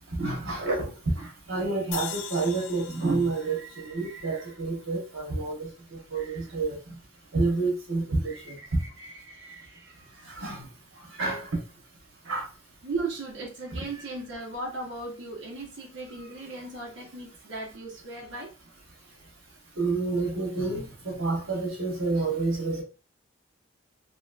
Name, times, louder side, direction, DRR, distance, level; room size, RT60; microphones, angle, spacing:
voice 1, 0.1-6.8 7.3-8.6 10.3-10.6 11.2-11.5 12.3-12.5 19.8-22.8, right 3 dB, 90° right, 0 dB, 1.1 m, -29 dB
sound 1, 1.9-5.2, left 10 dB, 80° left, 0.4 m, -41 dB
voice 2, 3.6-4.5 6.2-6.4 8.2-10.4 12.8-18.5, right 3 dB, 70° right, -4 dB, 0.9 m, -38 dB
3.0 x 2.8 x 2.3 m, 0.31 s
head